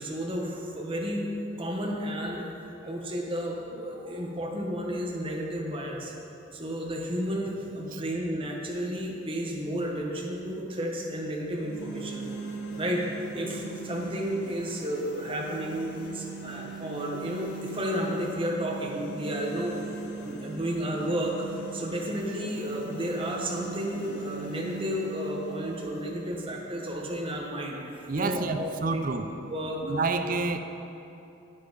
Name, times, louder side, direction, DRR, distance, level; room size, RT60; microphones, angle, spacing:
voice 1, 0.0-2.5 2.8-6.1 6.5-12.3 12.7-13.0 13.3-19.8 20.2-21.4 21.7-29.1 29.5-29.8, equal, 25° right, -1 dB, 1.2 m, -32 dB
sound 1, 11.4-27.4, right 4 dB, 70° left, 1.1 m, -40 dB
voice 2, 28.1-29.3 29.8-30.6, right 3 dB, 45° right, 8 dB, 0.5 m, -28 dB
9.5 x 9.4 x 4.0 m, 2.9 s
head